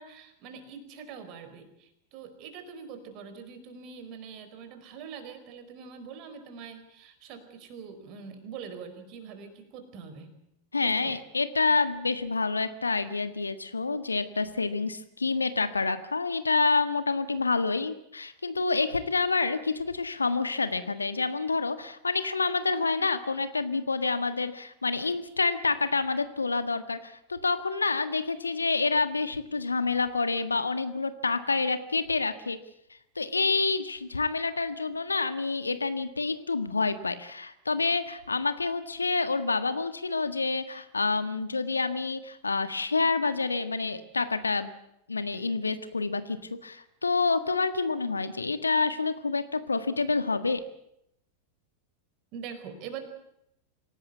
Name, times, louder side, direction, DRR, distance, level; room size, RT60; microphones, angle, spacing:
voice 1, 0.0-10.4 10.8-11.1 52.3-53.0, right 6 dB, 40° right, 9 dB, 4.5 m, -44 dB
voice 2, 10.7-32.6 33.1-44.7 45.1-50.6, left 4 dB, 80° left, 11 dB, 1.6 m, -28 dB
26.5 x 17.5 x 8.2 m, 0.79 s
figure-of-eight pair, 90°, 0 cm